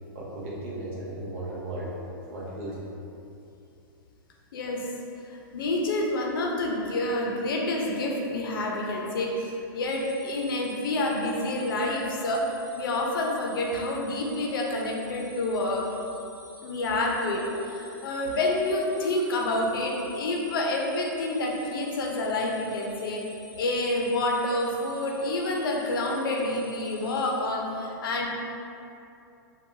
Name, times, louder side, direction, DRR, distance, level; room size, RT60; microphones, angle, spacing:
voice 1, 0.1-2.0 2.3-2.9, right 1 dB, 40° right, -6 dB, 0.6 m, -35 dB
voice 2, 4.5-4.8 5.3-15.9 16.6-17.4 17.7-23.2 23.6-28.3, left 2 dB, 75° left, -1 dB, 0.5 m, -28 dB
sound 1, 9.8-27.3, left 3 dB, 10° right, 1.3 m, -49 dB
2.9 x 2.2 x 2.6 m, 2.7 s
supercardioid pair, 175°, 12 cm